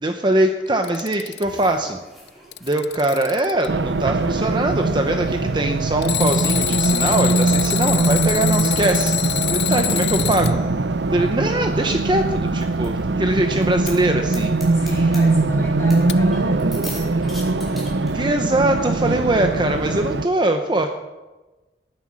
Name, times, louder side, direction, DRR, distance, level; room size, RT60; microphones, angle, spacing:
voice 1, 0.0-2.0 2.6-10.6 11.1-14.5 18.1-20.9, right 1 dB, 25° right, 5 dB, 0.9 m, -22 dB
Alarm, 0.7-1.6 2.3-3.7 6.0-10.5 13.9-14.0 16.1-16.2, left 16 dB, 70° left, 0.6 m, -26 dB
sound 1, 1.4-18.1, equal, ahead, 4.6 m, -43 dB
Race car auto racing, 3.7-20.3, right 3 dB, 85° right, 0.7 m, -21 dB
voice 2, 14.6-18.3, equal, 15° left, -5 dB, 6.9 m, -37 dB
19.0 x 9.9 x 6.3 m, 1.1 s
head